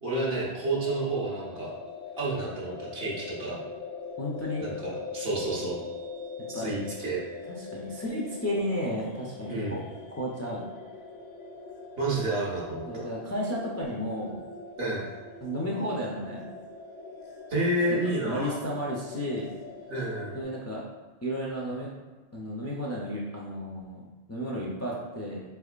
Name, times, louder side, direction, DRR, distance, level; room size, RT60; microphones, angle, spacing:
voice 1, 0.0-1.7 2.2-3.6 4.6-5.8 6.5-7.2 9.5-9.8 12.0-13.0 14.8-15.0 17.5-18.6 19.9-20.3, right 2 dB, 65° right, -5 dB, 1.2 m, -30 dB
sound 1, 0.7-20.4, left 4 dB, 75° left, 0.9 m, -42 dB
voice 2, 4.2-4.6 6.5-6.7 7.5-9.8 10.1-10.6 12.9-14.5 15.4-16.5 17.9-19.5 20.3-20.8 21.2-21.9 22.3-24.0 24.3-25.4, equal, 25° left, -4 dB, 0.3 m, -33 dB
4.4 x 3.4 x 2.4 m, 1.3 s
omnidirectional pair, 1.1 m